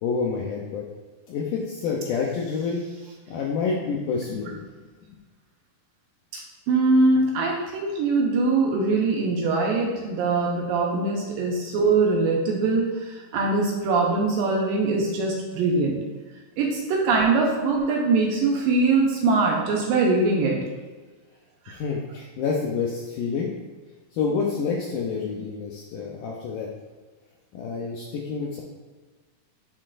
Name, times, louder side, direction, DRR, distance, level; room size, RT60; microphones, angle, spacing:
voice 1, 0.0-0.8 1.3-2.8 3.3-4.7 21.7-23.5 24.1-26.7 27.5-28.6, left 5 dB, 85° left, -2 dB, 1.8 m, -28 dB
voice 2, 6.7-12.9 13.3-15.9 16.6-20.6, right 3 dB, 75° right, -2 dB, 2.4 m, -22 dB
10.5 x 3.9 x 2.5 m, 1.3 s
omnidirectional pair, 4.4 m